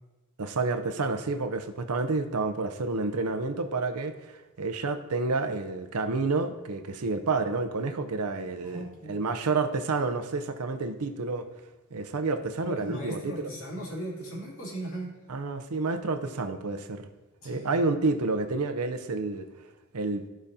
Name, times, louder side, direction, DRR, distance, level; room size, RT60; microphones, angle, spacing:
voice 1, 0.4-11.5 11.9-13.5 15.3-17.0 17.4-19.5 19.9-20.2, right 3 dB, 85° right, 8 dB, 0.6 m, -29 dB
voice 2, 8.6-9.1 12.6-15.1 17.4-17.7, right 1 dB, 65° left, -4 dB, 2.5 m, -37 dB
13.5 x 5.1 x 2.7 m, 1.1 s
head